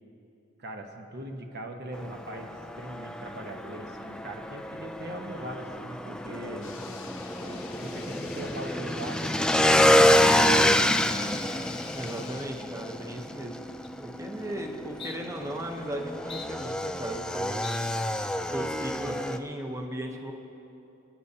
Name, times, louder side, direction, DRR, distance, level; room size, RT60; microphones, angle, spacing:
voice 1, 0.6-6.8 7.4-11.0, right 1 dB, 55° right, 3 dB, 1.0 m, -40 dB
Motorcycle / Engine, 1.9-19.4, left 1 dB, 5° left, 0.3 m, -27 dB
sound 1, 6.6-12.5, left 6 dB, 80° left, 1.1 m, -47 dB
voice 2, 11.9-13.6 14.0-17.8 18.5-20.3, right 1 dB, 15° right, 2 dB, 0.9 m, -36 dB
sound 2, 13.8-13.9 14.4-14.6 15.0-15.2 15.7-15.9 16.3-17.3 17.6-17.8 18.3-18.6, left 5 dB, 25° left, 0.7 m, -44 dB
29.0 x 9.8 x 2.8 m, 2.9 s
head